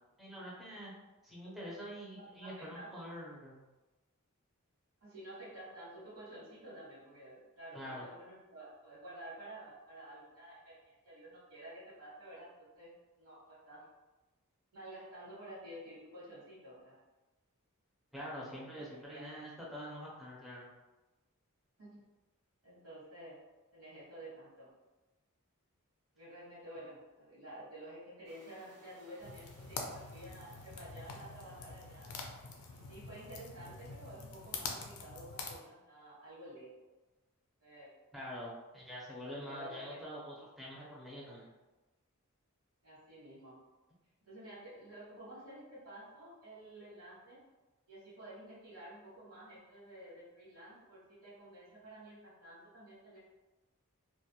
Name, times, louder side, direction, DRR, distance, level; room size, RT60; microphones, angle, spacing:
voice 1, 0.2-0.9 1.2-3.7 7.7-8.1 18.1-20.7 38.1-41.5, equal, ahead, -6 dB, 0.5 m, -45 dB
voice 2, 2.3-2.9 5.0-12.9 13.2-13.8 14.7-16.9 18.4-19.5 21.8-22.0 22.6-23.4 23.7-24.7 26.1-32.1 32.7-36.7 37.6-37.9 39.3-40.0 42.8-43.5 44.2-47.4 47.9-53.2, right 1 dB, 70° right, -8 dB, 1.2 m, -51 dB
sound 1, 28.2-35.0, right 1 dB, 90° right, 0.7 m, -64 dB
sound 2, 29.2-35.6, left 4 dB, 80° left, 0.4 m, -45 dB
2.2 x 2.0 x 2.8 m, 1.1 s
head